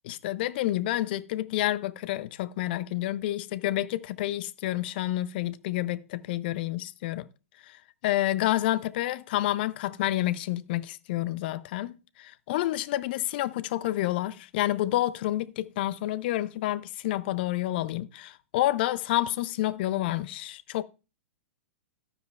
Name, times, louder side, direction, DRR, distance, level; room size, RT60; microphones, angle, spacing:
voice 1, 0.0-7.3 7.6-20.8, left 15 dB, 45° left, 0.4 m, -29 dB
12.5 x 9.6 x 2.3 m
figure-of-eight pair, 110°, 8 cm